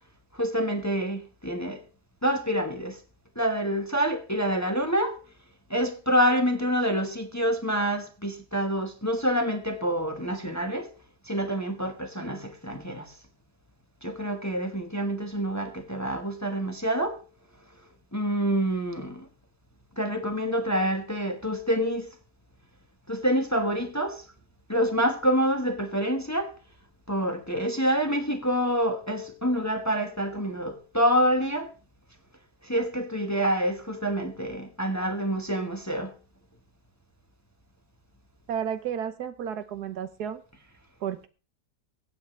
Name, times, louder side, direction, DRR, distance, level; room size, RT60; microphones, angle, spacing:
voice 1, 0.3-1.8 2.2-3.0 3.4-5.2 5.7-10.9 11.3-13.1 14.0-17.2 18.1-19.3 20.0-22.1 23.1-24.2 24.7-26.5 27.1-31.7 32.6-36.1, equal, 10° left, 1.1 m, -27 dB
voice 2, 38.5-40.4 41.0-41.3, right 8 dB, 80° right, 1.5 m, -32 dB
23.0 x 8.4 x 3.3 m
omnidirectional pair, 1.7 m